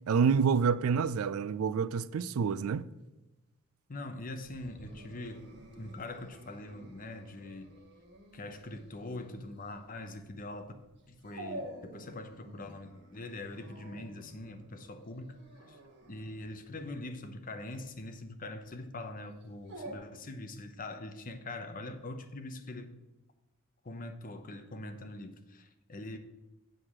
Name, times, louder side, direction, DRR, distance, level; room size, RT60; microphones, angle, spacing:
voice 1, 0.1-2.9, right 6 dB, 85° right, 0.4 m, -28 dB
voice 2, 3.9-7.7 8.3-10.7 11.1-15.4 15.7-15.8 16.1-22.9 23.8-26.2, left 2 dB, 40° left, 0.8 m, -43 dB
Dog, 4.4-20.0, right 1 dB, 55° right, 1.5 m, -50 dB
7.7 x 4.9 x 7.2 m
head